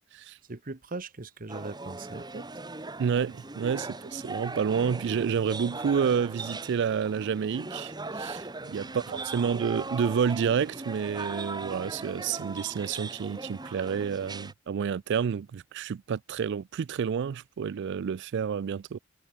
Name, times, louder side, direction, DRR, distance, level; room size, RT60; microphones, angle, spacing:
voice 1, 0.5-2.5 8.6-9.2, right 3 dB, 40° right, 1.2 m, -40 dB
sound 1, 1.5-14.5, right 3 dB, 20° right, 1.7 m, -39 dB
voice 2, 3.0-19.0, right 7 dB, 55° right, 0.3 m, -29 dB
head